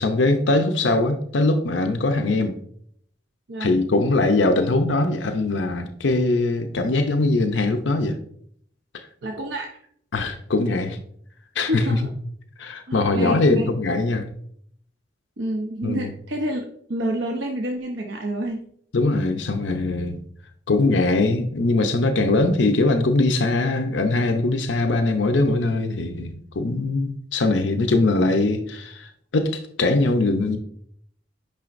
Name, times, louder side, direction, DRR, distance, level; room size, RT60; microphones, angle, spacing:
voice 1, 0.0-2.5 3.6-8.2 8.9-9.1 10.1-11.0 11.6-11.8 12.6-14.2 15.8-16.1 18.9-20.2 20.7-30.6, left 2 dB, 80° left, 0.6 m, -21 dB
voice 2, 3.5-3.8 9.2-9.8 11.7-12.1 12.9-14.0 15.4-16.6 16.9-18.6, right 1 dB, 85° right, 0.8 m, -28 dB
9.0 x 5.7 x 2.5 m
head